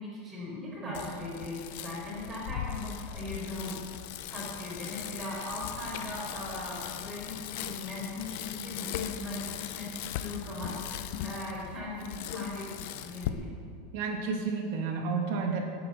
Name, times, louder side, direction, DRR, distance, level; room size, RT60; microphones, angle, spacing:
voice 1, 0.0-3.8 4.3-12.7 13.0-13.5, left 2 dB, 15° right, -5 dB, 5.0 m, -39 dB
Bicycle, 0.9-13.3, left 11 dB, 50° left, 0.8 m, -39 dB
voice 2, 13.9-15.6, right 4 dB, 50° right, 2 dB, 2.4 m, -31 dB
18.0 x 9.4 x 7.0 m, 2.4 s
supercardioid pair, 175°, 0 cm